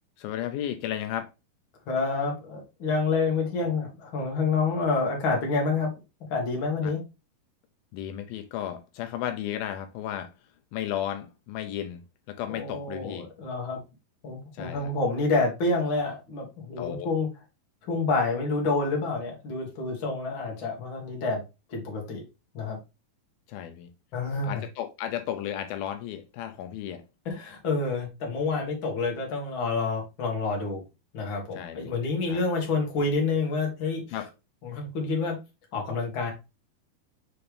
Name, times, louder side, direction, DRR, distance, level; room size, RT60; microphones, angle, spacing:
voice 1, 0.2-1.3 6.8-6.9 7.9-10.3 10.7-13.3 14.5-14.9 16.8-17.1 23.5-23.9 24.4-27.0 31.5-32.0 32.3-32.4 34.1-34.3, left 11 dB, 80° left, 2.3 m, -34 dB
voice 2, 1.9-5.9 6.3-7.0 12.5-13.8 14.2-17.3 17.9-21.4 21.7-22.2 22.5-22.8 24.1-24.6 27.3-30.8 31.1-34.0 34.6-35.4 35.7-36.3, left 3 dB, 40° left, 2.0 m, -28 dB
6.6 x 4.3 x 3.3 m
omnidirectional pair, 4.4 m